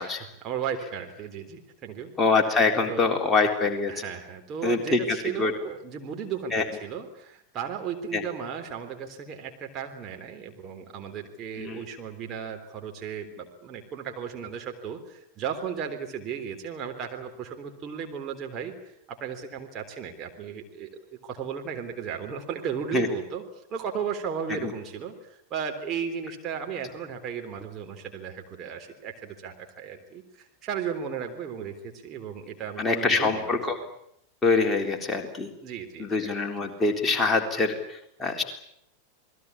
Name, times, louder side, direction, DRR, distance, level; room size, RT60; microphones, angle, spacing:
voice 1, 0.0-2.1 2.7-3.1 3.9-23.4 23.7-33.9 35.6-36.5, right 7 dB, 30° right, 3 dB, 3.6 m, -35 dB
voice 2, 2.2-3.9 4.6-5.5 6.5-6.6 8.1-8.2 11.6-11.8 22.9-23.1 32.8-33.7 34.4-35.5 36.0-38.4, left 3 dB, 15° left, 2 dB, 3.8 m, -24 dB
28.0 x 20.5 x 8.6 m, 0.73 s
figure-of-eight pair, 90°, 0 cm